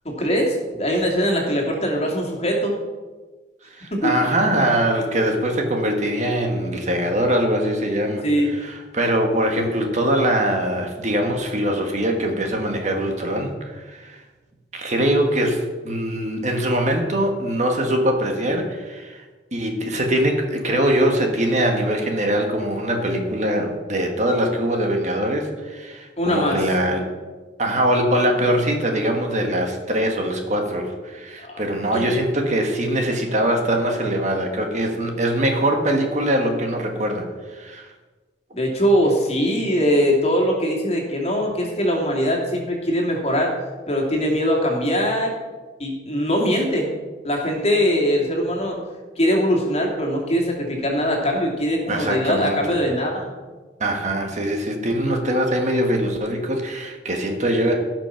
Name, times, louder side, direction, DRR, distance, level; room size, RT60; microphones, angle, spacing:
voice 1, 0.0-2.7 3.9-4.1 8.2-8.5 26.2-26.7 31.4-31.6 31.9-32.1 38.5-43.5 43.9-45.3 45.8-46.9 47.2-48.8 49.2-53.3, equal, 35° left, -1 dB, 2.7 m, -21 dB
voice 2, 3.8-14.2 14.7-19.2 19.5-27.1 27.6-37.9 51.9-52.8 53.8-57.8, right 1 dB, 40° right, 3 dB, 1.6 m, -22 dB
16.5 x 6.1 x 5.8 m, 1.3 s
head